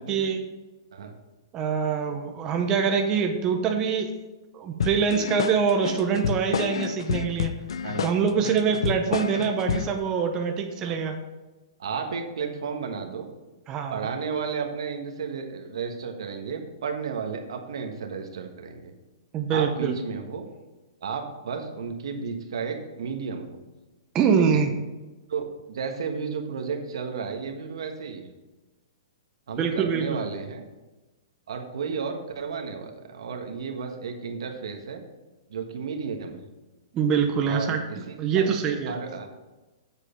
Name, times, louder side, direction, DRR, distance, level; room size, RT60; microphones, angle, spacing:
voice 1, 0.1-0.4 1.5-4.1 4.5-7.5 8.0-11.2 13.7-14.1 19.3-20.0 24.1-24.7 29.6-30.2 36.9-38.9, right 6 dB, 25° right, 4 dB, 0.8 m, -24 dB
sound 1, 4.8-10.0, left 7 dB, 80° left, 0.4 m, -29 dB
voice 2, 7.8-8.8 10.8-11.0 11.8-13.3 13.9-18.9 19.5-20.4 21.0-23.6 24.4-24.6 25.3-28.3 29.5-30.6 31.5-35.0 35.5-36.4 37.4-38.0 38.3-39.3, right 5 dB, 75° right, 4 dB, 1.4 m, -33 dB
7.5 x 6.5 x 5.2 m, 1.1 s
hypercardioid pair, 150°, 3 cm